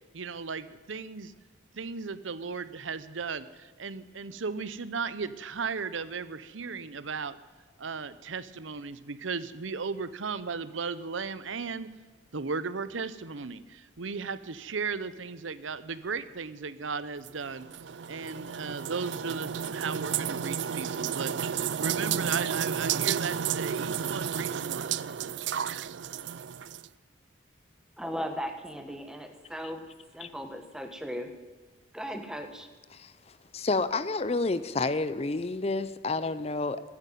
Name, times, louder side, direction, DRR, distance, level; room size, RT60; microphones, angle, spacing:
voice 1, 0.1-1.3 1.7-7.4 7.8-11.9 12.3-17.7 18.1-25.0, right 5 dB, 85° right, 15 dB, 0.8 m, -36 dB
sound 1, 17.2-26.9, right 8 dB, 70° right, 0.4 m, -32 dB
voice 2, 28.0-29.8 30.1-31.3 31.9-32.7, equal, 5° right, 6 dB, 1.2 m, -37 dB
voice 3, 33.5-36.8, left 3 dB, 30° left, 14 dB, 0.5 m, -29 dB
15.5 x 9.8 x 9.2 m, 1.4 s
head